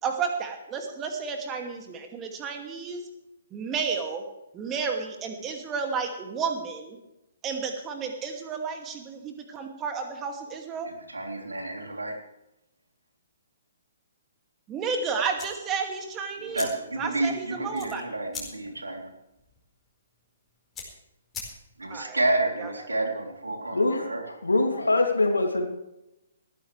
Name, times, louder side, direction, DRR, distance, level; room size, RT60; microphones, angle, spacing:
voice 1, 0.0-3.0 3.5-4.2 4.5-7.0 7.4-10.9 14.7-16.7 17.0-18.0 21.9-22.2 22.6-23.0, right 5 dB, 20° right, 4 dB, 2.5 m, -32 dB
voice 2, 10.8-12.1 16.5-19.1 21.8-24.2, right 2 dB, 75° right, 2 dB, 3.5 m, -30 dB
sound 1, 15.3-22.0, left 5 dB, 10° left, 4.8 m, -44 dB
voice 3, 23.7-24.1 24.4-25.7, left 2 dB, 75° left, 4 dB, 2.8 m, -23 dB
20.0 x 15.0 x 3.4 m, 0.89 s
figure-of-eight pair, 125°, 0 cm